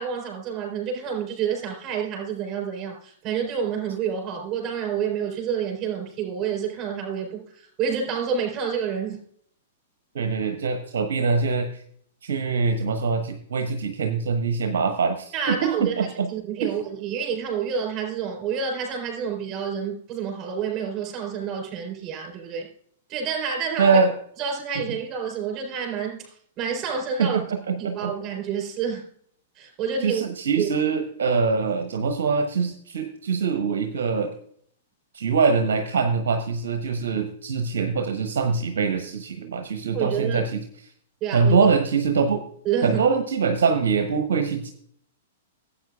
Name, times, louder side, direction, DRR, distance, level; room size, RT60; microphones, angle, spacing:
voice 1, 0.0-9.2 15.3-16.0 16.3-22.7 23.1-24.0 24.4-26.3 26.6-27.4 27.8-29.1 29.6-30.2 30.6-30.7 39.9-40.4 41.2-41.7 42.6-43.0, right 7 dB, 30° right, 3 dB, 3.9 m, -28 dB
voice 2, 10.1-11.8 12.2-16.3 16.6-16.7 23.8-24.1 24.8-24.9 27.2-28.1 30.0-34.3 35.1-40.6 41.3-42.4 42.8-44.7, right 5 dB, 60° right, 7 dB, 0.9 m, -23 dB
16.5 x 8.5 x 2.4 m, 0.63 s
figure-of-eight pair, 105°, 0 cm